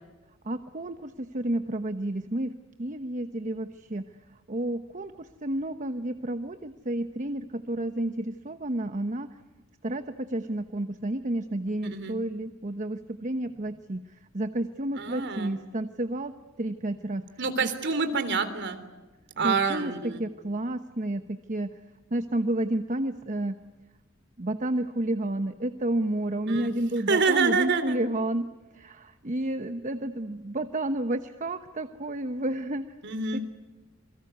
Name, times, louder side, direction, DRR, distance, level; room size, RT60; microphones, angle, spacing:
voice 1, 0.4-4.1 4.3-9.4 9.8-16.3 16.6-17.2 17.6-17.7 19.4-21.8 22.1-23.6 24.4-32.9 33.3-33.4, right 1 dB, 35° right, 8 dB, 1.1 m, -31 dB
voice 2, 11.8-12.2 15.0-15.5 17.4-18.8 19.4-20.2 26.5-26.7 27.1-28.0 33.0-33.4, right 4 dB, 55° right, 9 dB, 3.5 m, -27 dB
28.0 x 22.5 x 8.2 m, 1.2 s
head